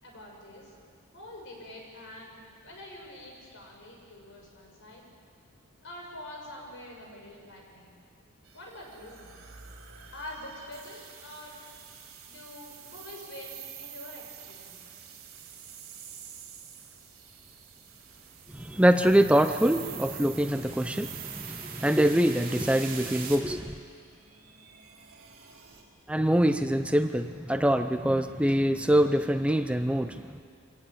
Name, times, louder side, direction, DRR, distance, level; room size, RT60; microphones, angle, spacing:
voice 1, 0.0-0.7 1.1-5.0 5.8-7.9 8.5-9.3 10.1-11.6 12.2-14.8, left 1 dB, 65° left, 0 dB, 6.3 m, -45 dB
sound 1, 8.5-25.8, right 9 dB, 80° right, 3.8 m, -47 dB
sound 2, 17.4-23.4, right 5 dB, 45° right, 3.3 m, -44 dB
voice 2, 18.5-23.7 26.1-30.4, right 1 dB, 5° right, 9 dB, 0.6 m, -24 dB
25.5 x 18.0 x 8.8 m, 2.2 s
head